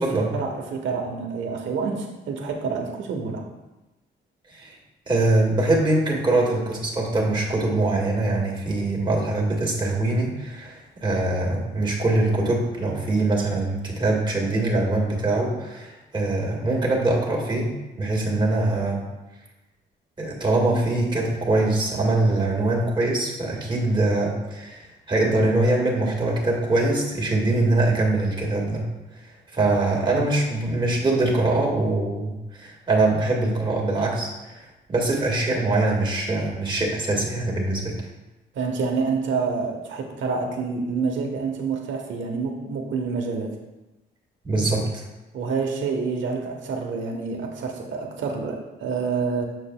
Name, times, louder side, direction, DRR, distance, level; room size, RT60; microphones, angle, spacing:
voice 1, 0.0-3.4 38.5-43.6 45.3-49.5, right 4 dB, 70° right, 2 dB, 1.1 m, -27 dB
voice 2, 5.1-19.0 20.2-28.9 29.5-37.9 44.4-45.0, right 2 dB, 25° right, -3 dB, 1.8 m, -23 dB
6.8 x 6.7 x 2.2 m, 1.0 s
cardioid pair, 90°, 20 cm